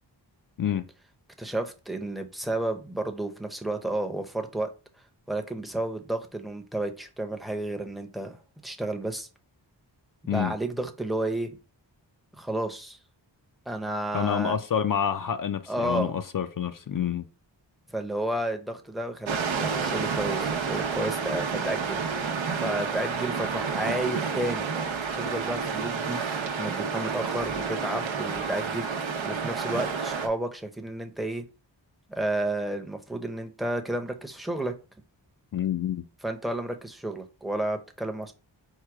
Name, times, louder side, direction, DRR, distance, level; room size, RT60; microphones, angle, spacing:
voice 1, 1.4-4.7 5.3-8.4 8.6-9.3 10.2-11.5 12.4-13.0 13.7-14.6 15.7-16.1 17.9-22.3 22.6-24.7 25.1-26.2 26.6-28.9 29.2-31.4 32.2-34.7 36.2-38.3, right 1 dB, ahead, 0.6 m, -31 dB
voice 2, 14.1-17.3 35.5-36.1, left 8 dB, 50° left, 0.4 m, -28 dB
sound 1, 19.3-30.3, right 5 dB, 85° right, 0.8 m, -30 dB
4.6 x 2.2 x 4.6 m
wide cardioid pair, 65°, 45 cm